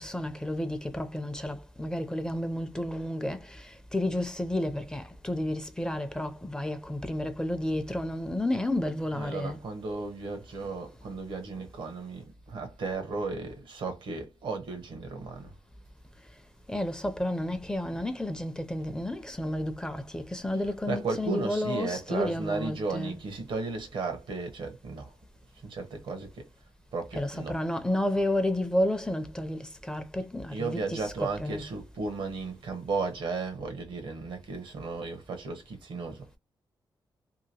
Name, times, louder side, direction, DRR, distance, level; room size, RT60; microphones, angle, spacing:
voice 1, 0.0-9.6 16.7-23.2 27.1-31.7, left 1 dB, 10° left, 0.5 m, -31 dB
voice 2, 9.1-15.5 17.9-18.0 20.9-25.1 25.6-26.5 26.9-27.6 30.5-36.3, right 4 dB, 85° right, 0.9 m, -35 dB
2.8 x 2.7 x 2.7 m
wide cardioid pair, 130°, 8 cm